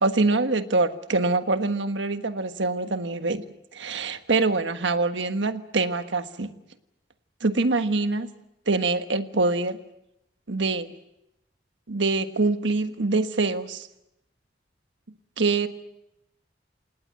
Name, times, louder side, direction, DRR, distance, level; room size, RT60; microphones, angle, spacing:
voice 1, 0.0-3.4 3.7-6.5 7.4-8.3 8.7-9.8 10.5-10.9 11.9-13.9 15.4-15.7, right 3 dB, 90° right, 9 dB, 1.4 m, -24 dB
27.5 x 19.0 x 7.7 m, 0.85 s
head